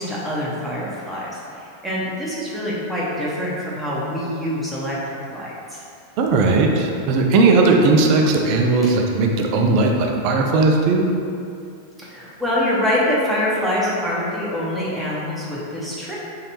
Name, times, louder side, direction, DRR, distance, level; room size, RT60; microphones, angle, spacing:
voice 1, 0.0-5.0 5.3-5.8 8.8-8.9 12.0-16.2, left 1 dB, 5° right, -8 dB, 1.0 m, -25 dB
voice 2, 6.2-11.0, right 3 dB, 45° right, 1 dB, 0.5 m, -17 dB
3.1 x 2.8 x 4.4 m, 2.5 s
figure-of-eight pair, 90°, 0 cm